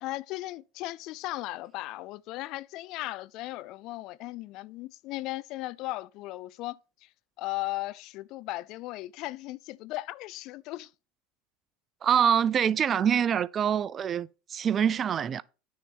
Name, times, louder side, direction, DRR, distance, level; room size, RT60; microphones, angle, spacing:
voice 1, 0.0-7.1 7.4-10.9, left 18 dB, 60° left, 0.4 m, -37 dB
voice 2, 12.0-15.4, right 8 dB, 35° right, 0.5 m, -25 dB
9.4 x 4.1 x 5.7 m
hypercardioid pair, 90°, 0 cm